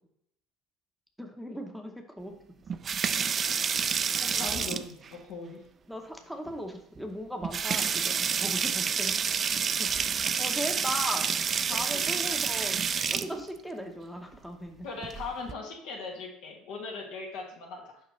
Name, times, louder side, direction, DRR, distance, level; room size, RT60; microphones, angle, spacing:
voice 1, 1.2-2.4 5.9-9.9 10.4-11.3 11.7-12.8 13.1-14.9, equal, ahead, 3 dB, 0.8 m, -38 dB
sound 1, 2.7-5.1 6.5-6.6 7.0-7.1 7.4-13.3 15.0-15.5, right 6 dB, 35° right, 0.3 m, -29 dB
voice 2, 3.8-5.6 11.7-12.1 14.8-18.0, left 4 dB, 75° left, 0 dB, 1.8 m, -40 dB
6.5 x 5.4 x 3.2 m, 0.74 s
supercardioid pair, 105°, 0 cm